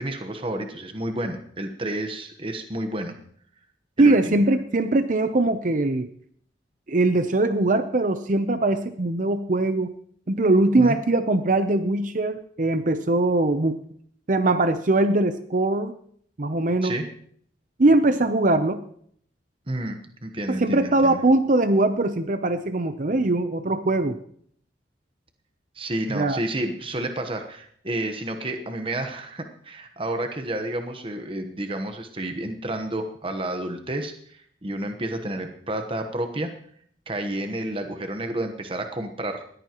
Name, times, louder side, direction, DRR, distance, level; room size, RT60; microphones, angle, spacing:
voice 1, 0.0-3.2 4.0-4.4 10.8-11.0 16.8-17.1 19.7-21.2 25.7-36.5 37.1-39.5, right 1 dB, 30° right, 6 dB, 1.1 m, -30 dB
voice 2, 4.0-6.1 6.9-9.9 10.3-13.8 14.3-15.9 16.4-16.9 17.8-18.8 20.5-24.2 26.1-26.4, right 2 dB, 45° right, 10 dB, 0.7 m, -21 dB
20.0 x 14.5 x 3.0 m, 0.62 s
head